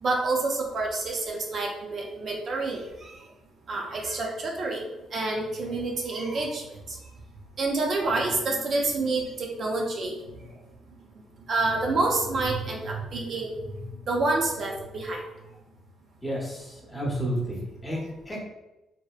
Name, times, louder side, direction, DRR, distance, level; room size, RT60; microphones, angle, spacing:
voice 1, 0.0-3.2 3.7-4.9 5.1-7.0 7.6-10.2 11.5-13.7 14.1-15.2, right 2 dB, 55° right, 0 dB, 0.4 m, -28 dB
voice 2, 16.2-18.4, equal, 15° left, -3 dB, 0.8 m, -31 dB
2.7 x 2.0 x 2.3 m, 1.0 s
cardioid pair, 90°, 0 cm